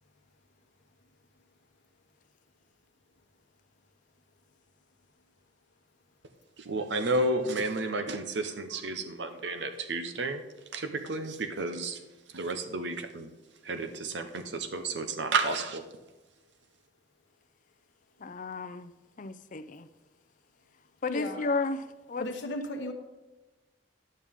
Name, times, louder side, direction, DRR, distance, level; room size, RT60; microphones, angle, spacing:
voice 1, 6.6-10.4 10.7-13.3 13.6-15.9, right 2 dB, 70° right, 8 dB, 0.8 m, -32 dB
voice 2, 18.2-18.9 19.2-19.9 21.0-22.3, left 3 dB, 45° left, 9 dB, 0.6 m, -33 dB
voice 3, 21.1-21.4 22.2-22.9, left 1 dB, 80° left, 2 dB, 1.1 m, -35 dB
11.0 x 8.7 x 3.6 m, 1.1 s
head